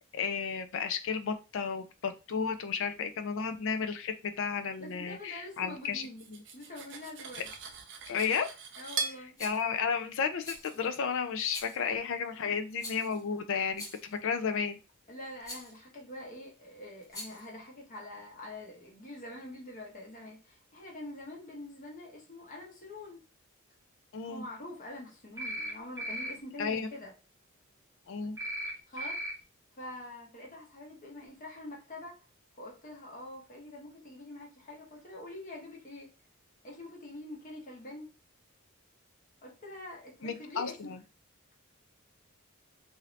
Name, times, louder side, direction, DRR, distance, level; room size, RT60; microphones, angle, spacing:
voice 1, 0.1-6.1 8.1-8.5 9.4-14.8 24.1-24.4 26.6-26.9 28.1-28.4 40.2-41.0, left 6 dB, 65° left, 9 dB, 0.4 m, -33 dB
voice 2, 4.8-6.2 6.5-7.5 8.8-9.4 12.3-12.5 15.1-23.2 24.2-27.1 28.9-29.2 29.8-32.2 32.6-36.1 36.6-38.1 39.4-41.0, left 1 dB, 40° left, -2 dB, 1.0 m, -45 dB
Cutlery silverware, 6.0-9.2, right 5 dB, 60° right, 0.6 m, -39 dB
Rattle, 9.4-9.7 10.4-10.9 11.5-11.9 12.8-13.2 13.7-14.2 15.4-15.8 17.0-17.5, left 1 dB, 15° left, 1.0 m, -45 dB
sound 1, 25.4-25.7 26.0-26.3 28.4-28.7 29.0-29.3, right 1 dB, 15° right, 0.7 m, -36 dB
2.7 x 2.6 x 3.1 m, 0.31 s
head